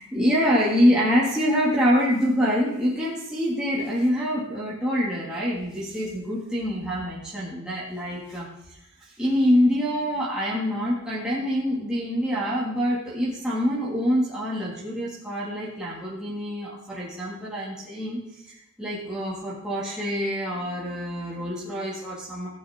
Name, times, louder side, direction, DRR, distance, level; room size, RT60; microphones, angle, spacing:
voice 1, 0.0-8.8 9.2-22.5, equal, 5° right, -7 dB, 1.9 m, -25 dB
16.0 x 8.9 x 3.6 m, 0.79 s
head